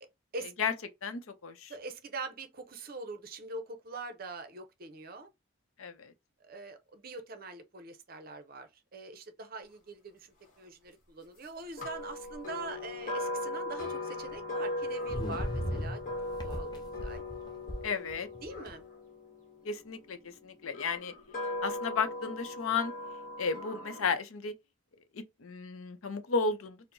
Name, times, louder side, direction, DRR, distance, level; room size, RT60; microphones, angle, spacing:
voice 1, 1.0-1.7 5.8-6.1 17.8-18.3 19.6-21.1 21.6-22.9 23.4-24.5 25.1-26.9, left 5 dB, 85° left, 0.6 m, -33 dB
voice 2, 1.7-5.3 6.4-16.0 16.4-17.2 18.4-18.8, right 3 dB, 45° right, 0.6 m, -43 dB
sound 1, 11.8-19.9 20.7-24.1, left 2 dB, 40° left, 1.1 m, -38 dB
sound 2, 13.8-13.9 15.1-18.7, equal, 20° left, 0.5 m, -37 dB
4.4 x 2.0 x 2.6 m
head